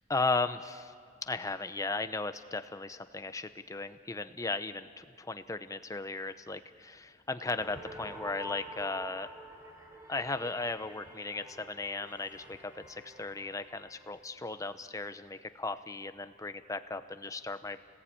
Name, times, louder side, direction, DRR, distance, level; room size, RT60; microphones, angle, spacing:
voice 1, 0.1-0.9 1.3-9.3 10.1-17.8, left 3 dB, 15° left, 10 dB, 0.8 m, -36 dB
sound 1, 7.5-14.5, left 1 dB, 15° right, 3.8 m, -48 dB
30.0 x 19.5 x 8.8 m, 2.3 s
head